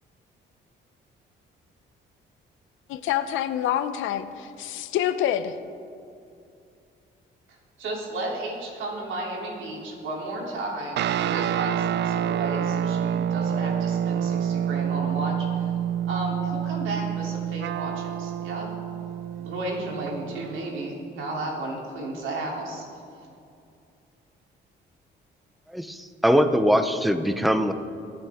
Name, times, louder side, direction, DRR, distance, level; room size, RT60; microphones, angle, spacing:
voice 1, 2.9-5.5, left 11 dB, 90° left, 11 dB, 0.7 m, -27 dB
voice 2, 7.8-15.7 16.1-18.7 19.4-22.8, right 2 dB, 80° right, -2 dB, 3.1 m, -33 dB
sound 1, 11.0-20.7, right 9 dB, 60° right, 0.4 m, -28 dB
voice 3, 25.7-27.7, equal, ahead, 9 dB, 0.8 m, -22 dB
23.5 x 8.7 x 3.6 m, 2.5 s
cardioid pair, 90°, 20 cm